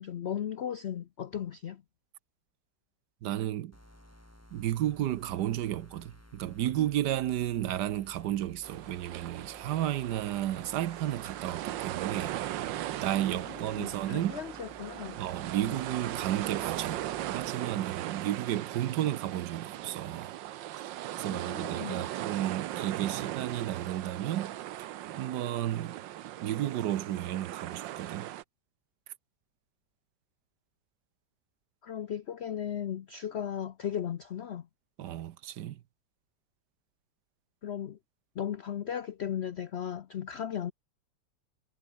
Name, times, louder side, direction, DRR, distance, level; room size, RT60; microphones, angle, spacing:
voice 1, 0.0-1.8 13.3-15.2 15.5-15.7 21.3-22.1 31.8-34.7 37.6-38.0 38.4-40.7, left 9 dB, 80° left, 0.5 m, -36 dB
voice 2, 3.2-3.8 4.5-12.4 13.0-14.4 15.1-20.3 20.8-20.9 21.2-24.6 25.2-26.0 26.4-28.3 35.0-35.8, right 12 dB, 70° right, 1.3 m, -33 dB
sound 1, 3.7-17.5, equal, 5° left, 6.7 m, -56 dB
sound 2, 8.6-28.4, right 13 dB, 90° right, 1.5 m, -38 dB
omnidirectional pair, 2.0 m